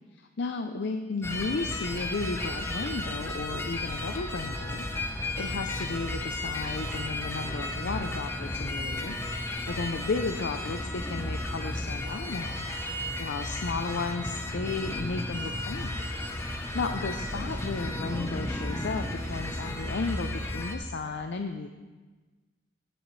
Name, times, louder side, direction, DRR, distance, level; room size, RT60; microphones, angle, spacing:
voice 1, 0.1-4.9 5.1-9.2 9.7-12.7 13.2-15.9 16.7-21.7, left 3 dB, 60° left, 6 dB, 0.5 m, -34 dB
sound 1, 1.2-20.7, left 1 dB, 15° left, 0.7 m, -33 dB
16.5 x 7.7 x 3.2 m, 1.3 s
head